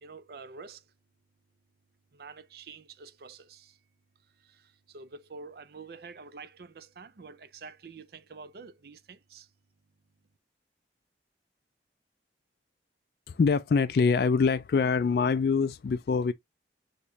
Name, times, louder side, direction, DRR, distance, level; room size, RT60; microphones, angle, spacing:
voice 1, 0.0-0.9 2.1-3.8 4.2-9.5, right 4 dB, 55° right, 0.5 m, -47 dB
voice 2, 13.3-16.3, left 5 dB, 55° left, 0.3 m, -24 dB
6.6 x 3.0 x 2.6 m
head